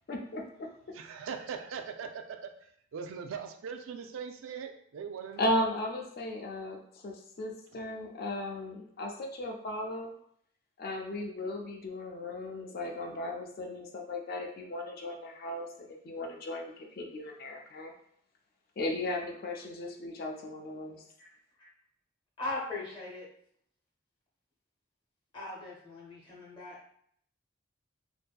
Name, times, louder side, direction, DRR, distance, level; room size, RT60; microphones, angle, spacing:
voice 1, 0.1-0.7 5.4-10.1 10.8-17.9 18.8-21.0, left 1 dB, 50° left, 1 dB, 0.4 m, -36 dB
voice 2, 0.9-2.5 2.9-5.6, right 6 dB, 85° right, 6 dB, 0.3 m, -40 dB
voice 3, 22.4-23.3 25.3-26.8, left 2 dB, 25° left, -3 dB, 0.8 m, -39 dB
2.6 x 2.5 x 2.2 m, 0.66 s
head